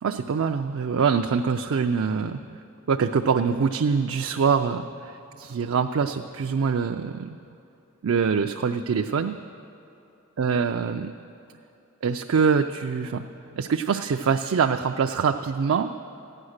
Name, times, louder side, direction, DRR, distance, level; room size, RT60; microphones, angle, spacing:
voice 1, 0.0-2.4 2.9-7.4 8.0-9.3 10.4-11.1 12.0-13.2 13.6-15.9, right 6 dB, 70° right, 5 dB, 0.4 m, -24 dB
15.0 x 9.8 x 6.5 m, 2.7 s
head